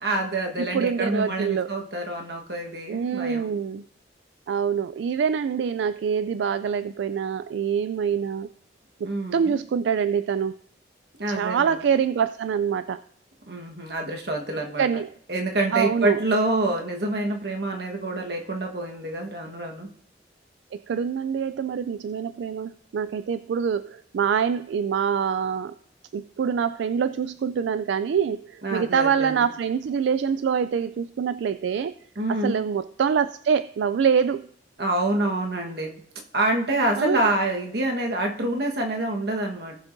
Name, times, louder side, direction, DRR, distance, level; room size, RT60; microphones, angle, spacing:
voice 1, 0.0-3.5 9.0-9.5 11.2-11.8 13.5-14.9 15.3-19.9 28.6-29.5 32.2-32.6 34.8-35.9 36.3-39.8, right 2 dB, 60° right, 1 dB, 1.4 m, -27 dB
voice 2, 0.7-1.7 2.9-3.8 4.5-8.5 9.3-10.6 11.3-13.0 14.8-15.1 15.7-16.2 20.7-25.7 26.1-31.9 32.4-34.5 37.0-37.2, right 7 dB, 80° right, 13 dB, 0.3 m, -25 dB
18.5 x 7.3 x 2.6 m, 0.64 s
head